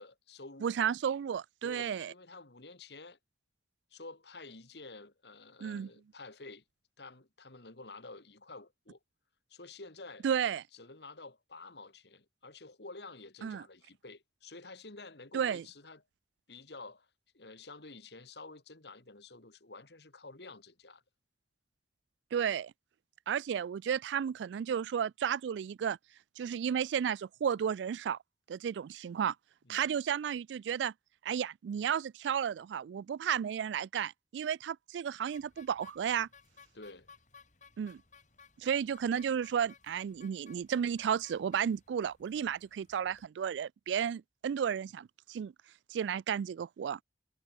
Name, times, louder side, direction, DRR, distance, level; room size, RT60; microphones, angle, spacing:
voice 1, 0.0-0.7 1.6-3.2 3.9-6.6 7.0-9.0 9.5-10.3 10.7-16.0 16.5-17.1 17.3-21.0 29.7-30.0 36.7-37.1, left 3 dB, 65° left, 2.4 m, -50 dB
voice 2, 0.6-2.1 5.6-5.9 10.2-10.6 13.4-13.6 15.3-15.6 22.3-22.7 23.3-26.0 26.4-28.2 28.5-29.3 29.7-30.9 31.2-36.3 37.8-38.0 38.6-45.5 45.9-47.0, right 8 dB, 80° right, 0.3 m, -33 dB
sound 1, 35.3-43.3, left 5 dB, 45° left, 3.8 m, -60 dB
head